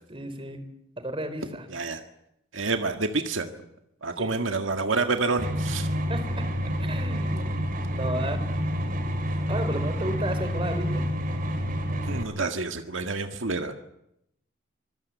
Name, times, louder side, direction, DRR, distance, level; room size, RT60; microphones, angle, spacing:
voice 1, 0.1-0.6 1.0-1.7 4.2-4.3 6.1-6.3 6.8-7.5 7.9-8.4 9.5-11.0, right 1 dB, 25° right, 9 dB, 4.0 m, -32 dB
voice 2, 1.7-2.0 2.5-3.5 4.0-5.9 12.0-13.7, right 3 dB, 80° right, 6 dB, 1.8 m, -28 dB
sound 1, 5.4-12.2, equal, 45° right, 4.2 m, -28 dB
25.5 x 21.5 x 8.4 m, 0.80 s
head